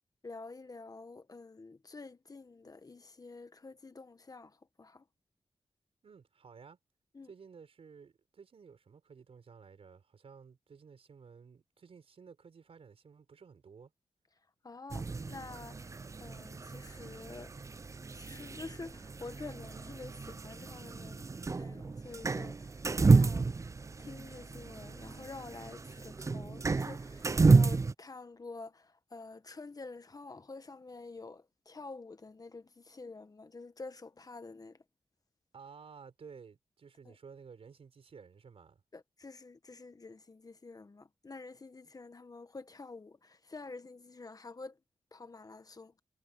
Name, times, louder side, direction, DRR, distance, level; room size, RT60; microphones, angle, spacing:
voice 1, 0.2-5.0 7.1-7.3 14.6-15.8 16.2-17.5 18.1-21.2 21.5-23.5 24.0-34.8 37.0-37.2 38.9-44.8 45.1-45.9, left 3 dB, 40° left, 1.4 m, -48 dB
voice 2, 6.0-6.8 7.2-13.9 35.5-38.8, right 6 dB, 75° right, 5.0 m, -54 dB
sound 1, 14.9-27.9, right 4 dB, 30° right, 0.4 m, -31 dB
cardioid pair, 75°, 10 cm